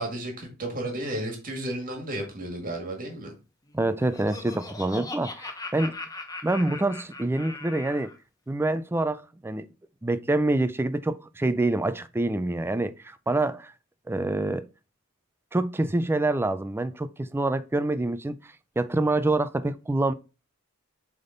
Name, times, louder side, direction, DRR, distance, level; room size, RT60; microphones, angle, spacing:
voice 1, 0.0-3.3, right 1 dB, 40° right, 1.9 m, -33 dB
Laughter, 3.7-8.2, left 3 dB, 15° left, 0.8 m, -40 dB
voice 2, 3.7-5.9 6.4-8.1 8.5-9.7 10.0-13.7 14.1-14.6 15.5-18.4 18.8-20.1, right 2 dB, 10° right, 0.3 m, -26 dB
7.7 x 3.6 x 3.9 m
head